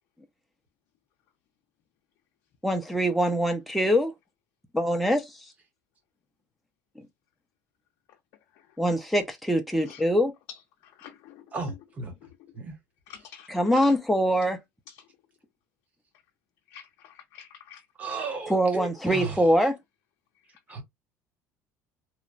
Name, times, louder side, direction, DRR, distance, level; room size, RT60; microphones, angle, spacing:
voice 1, 2.6-4.1 4.7-5.3 8.8-10.3 13.5-14.6 18.5-19.8, equal, ahead, 0.5 m, -23 dB
voice 2, 10.5-11.8 12.2-12.3 13.1-14.0 14.9-15.1 16.7-17.8, left 9 dB, 65° left, 0.6 m, -48 dB
voice 3, 11.5-12.1 12.5-12.7 18.0-19.4 20.7-20.8, right 3 dB, 25° right, 1.0 m, -34 dB
2.9 x 2.1 x 2.5 m
cardioid pair, 150°, 6 cm